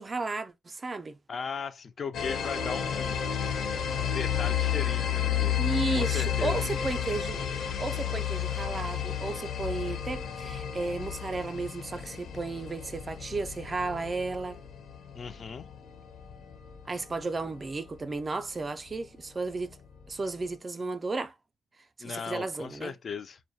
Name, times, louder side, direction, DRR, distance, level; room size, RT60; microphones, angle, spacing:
voice 1, 0.0-1.2 5.6-7.5 7.8-14.6 16.9-19.8 20.1-21.3 22.0-22.9, right 3 dB, 30° right, 0.3 m, -34 dB
voice 2, 1.3-3.5 4.0-5.6 5.9-6.6 15.1-15.7 22.0-23.4, left 6 dB, 45° left, 0.3 m, -37 dB
sound 1, 2.1-17.6, left 9 dB, 70° left, 0.7 m, -32 dB
2.2 x 2.1 x 2.6 m
cardioid pair, 90°, 0 cm